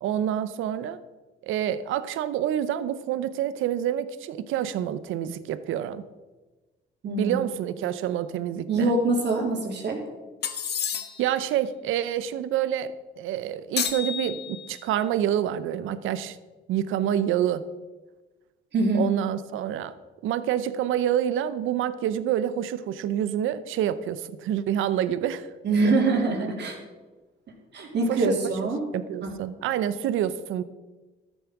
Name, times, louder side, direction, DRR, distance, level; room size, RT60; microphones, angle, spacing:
voice 1, 0.0-1.0 1.4-6.0 7.2-8.9 11.2-16.4 16.7-17.7 18.9-19.9 20.2-25.5 25.8-25.9 28.1-28.3 28.9-30.6, right 10 dB, 85° right, 14 dB, 0.7 m, -27 dB
voice 2, 7.0-7.4 8.7-10.0 18.7-19.1 25.6-26.8 27.7-28.8 29.2-29.3, right 2 dB, 60° right, 0 dB, 3.3 m, -24 dB
sound 1, 10.4-11.4 13.8-14.8, left 8 dB, 55° left, 1.3 m, -31 dB
13.0 x 8.0 x 6.0 m, 1.2 s
cardioid pair, 90°, 20 cm